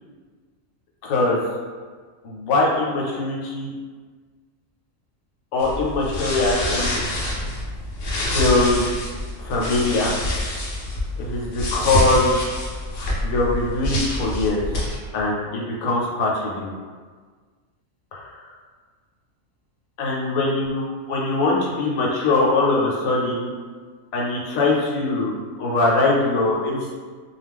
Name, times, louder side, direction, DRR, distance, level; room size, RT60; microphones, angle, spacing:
voice 1, 1.0-1.4 2.2-3.7 5.5-7.0 8.1-8.9 9.4-10.1 11.2-12.4 13.2-14.6 15.1-16.7 18.1-18.5 20.0-23.5 24.1-26.9, left 2 dB, 75° left, -3 dB, 1.0 m, -22 dB
sound 1, 5.6-15.0, left 1 dB, 60° left, 0.6 m, -26 dB
2.3 x 2.2 x 3.4 m, 1.5 s
omnidirectional pair, 1.5 m